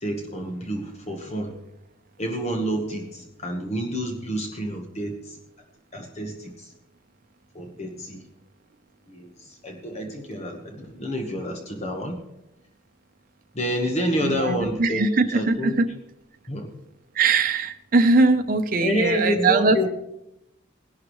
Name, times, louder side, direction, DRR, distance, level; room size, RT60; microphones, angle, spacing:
voice 1, 0.0-1.5 2.2-5.4 5.9-6.7 7.5-8.2 9.1-12.2 13.5-15.1 15.3-15.8 16.5-16.7 18.8-19.9, equal, 35° left, 2 dB, 1.3 m, -28 dB
voice 2, 14.2-15.9 17.1-19.9, right 3 dB, 45° right, 6 dB, 0.8 m, -21 dB
18.5 x 11.5 x 3.2 m, 0.85 s
head